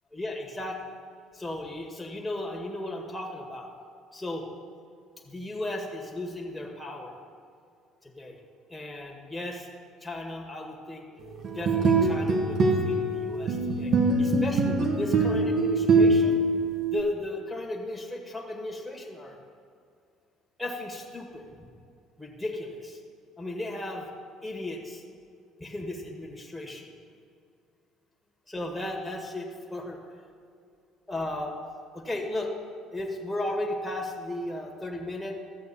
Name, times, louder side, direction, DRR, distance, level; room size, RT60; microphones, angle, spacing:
voice 1, 0.1-0.9 1.3-3.7 4.1-4.5 5.2-7.1 8.2-8.4 8.7-9.7 10.0-11.0 11.5-16.4 16.9-19.4 20.6-21.7 22.2-23.0 23.4-24.1 24.4-25.0 25.6-26.9 28.5-30.0 31.1-31.6 31.9-32.5 32.9-35.4, left 1 dB, 10° left, 0 dB, 1.7 m, -35 dB
sound 1, 11.4-17.0, right 2 dB, 50° right, 1.5 m, -23 dB
13.0 x 7.9 x 4.3 m, 2.3 s
hypercardioid pair, 55°, 0 cm